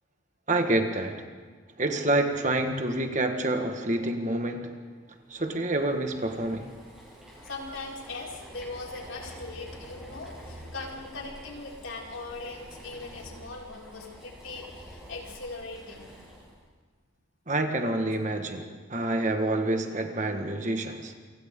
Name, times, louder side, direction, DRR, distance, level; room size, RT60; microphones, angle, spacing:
voice 1, 0.5-1.2 1.8-4.8 5.3-6.7 17.5-21.1, right 2 dB, 35° right, 5 dB, 1.6 m, -28 dB
Boiling, 5.4-16.6, equal, 5° right, 7.1 m, -47 dB
voice 2, 7.5-16.1, left 3 dB, 80° left, -2 dB, 4.3 m, -40 dB
28.0 x 25.0 x 3.8 m, 1.5 s
head